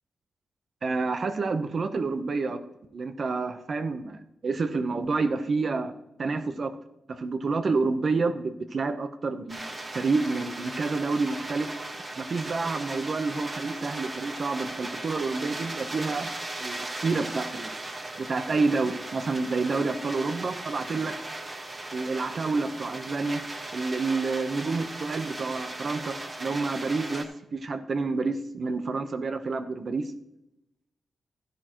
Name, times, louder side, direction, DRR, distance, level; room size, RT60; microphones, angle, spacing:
voice 1, 0.8-2.6 2.9-6.8 7.1-9.6 9.9-11.7 12.2-16.3 16.6-17.7 18.2-21.2 21.9-23.4 23.7-30.1, right 3 dB, 55° right, 9 dB, 0.9 m, -29 dB
sound 1, 9.5-27.2, right 2 dB, 35° right, 1.7 m, -37 dB
13.5 x 10.5 x 3.1 m, 0.87 s
cardioid pair, 75°, 0 cm